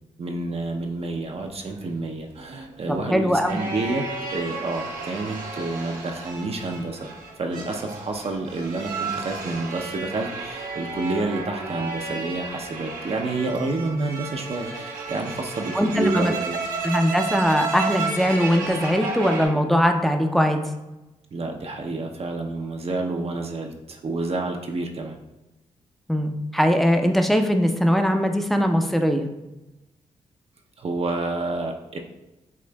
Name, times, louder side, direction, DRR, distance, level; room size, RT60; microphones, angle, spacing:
voice 1, 0.2-4.1 4.3-7.1 7.4-16.6 21.3-25.2 30.8-32.0, right 3 dB, 45° right, 3 dB, 0.6 m, -29 dB
sound 1, 1.7-19.5, right 4 dB, 85° right, 0.7 m, -33 dB
voice 2, 2.9-3.6 15.7-16.3 16.8-20.6 26.1-29.3, equal, ahead, 5 dB, 0.5 m, -21 dB
7.1 x 2.5 x 2.2 m, 0.99 s
supercardioid pair, 50°, 14 cm